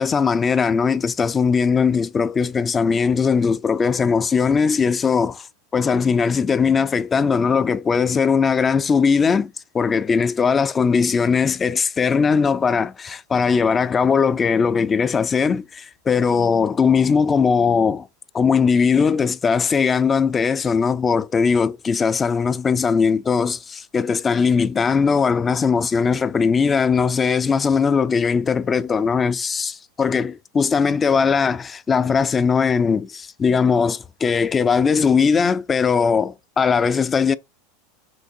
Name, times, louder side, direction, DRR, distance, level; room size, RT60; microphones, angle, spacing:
voice 1, 0.0-5.5 5.7-18.1 18.3-37.4, left 5 dB, 25° left, 0.4 m, -19 dB
5.8 x 2.6 x 2.5 m
hypercardioid pair, 95°, 0 cm